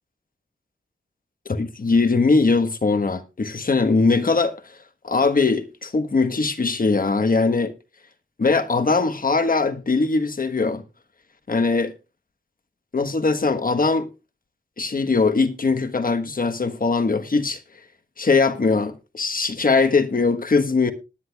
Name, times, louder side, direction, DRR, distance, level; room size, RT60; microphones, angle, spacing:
voice 1, 1.4-4.6 5.0-7.7 8.4-10.8 11.5-11.9 12.9-14.1 14.8-17.6 18.2-20.9, left 4 dB, 45° left, 1.4 m, -21 dB
20.0 x 10.0 x 2.4 m
wide cardioid pair, 95°, 21 cm